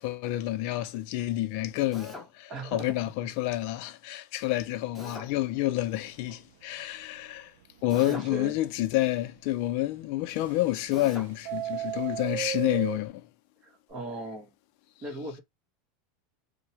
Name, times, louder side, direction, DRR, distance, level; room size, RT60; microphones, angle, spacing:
voice 1, 0.0-7.5 7.8-13.3, left 16 dB, 60° left, 0.4 m, -29 dB
Drill, 1.9-2.3 4.9-5.3 7.9-8.3 10.9-11.3, left 1 dB, ahead, 1.0 m, -43 dB
voice 2, 2.5-3.0 8.1-8.6 13.6-14.5 15.0-15.4, right 1 dB, 35° right, 1.2 m, -37 dB
Subway metro underground, 6.0-6.4 6.8-6.9 7.2-7.3 7.8-7.9 10.3-11.0 11.3-13.0, right 12 dB, 75° right, 0.4 m, -34 dB
2.7 x 2.2 x 2.8 m
supercardioid pair, 135°, 0 cm